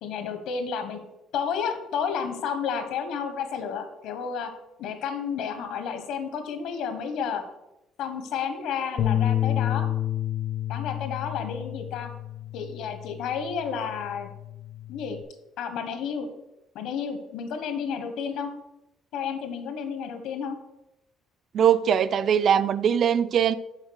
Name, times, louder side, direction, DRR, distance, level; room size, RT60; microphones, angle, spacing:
voice 1, 0.0-1.1 1.3-4.5 4.8-7.4 8.0-9.9 10.7-12.1 12.5-14.3 14.9-15.2 15.6-16.3 16.7-18.5 19.1-20.6, left 6 dB, 70° left, 1.1 m, -31 dB
sound 1, 9.0-15.2, left 11 dB, 50° left, 0.5 m, -30 dB
voice 2, 21.5-23.5, right 8 dB, 40° right, 0.3 m, -21 dB
7.2 x 4.5 x 6.4 m
cardioid pair, 175°, 0 cm